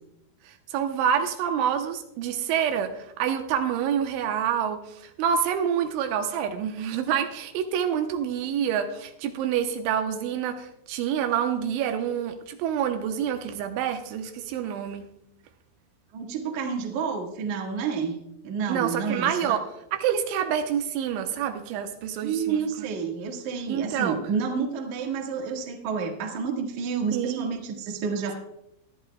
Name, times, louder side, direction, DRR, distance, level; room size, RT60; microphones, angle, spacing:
voice 1, 0.5-15.1 18.7-19.6 19.9-22.6 23.7-24.2 27.1-27.6, right 8 dB, 85° right, 6 dB, 3.2 m, -27 dB
voice 2, 16.1-18.2 18.4-19.6 22.2-28.4, right 6 dB, 55° right, 1 dB, 2.3 m, -29 dB
22.0 x 11.0 x 2.2 m, 0.80 s
omnidirectional pair, 5.3 m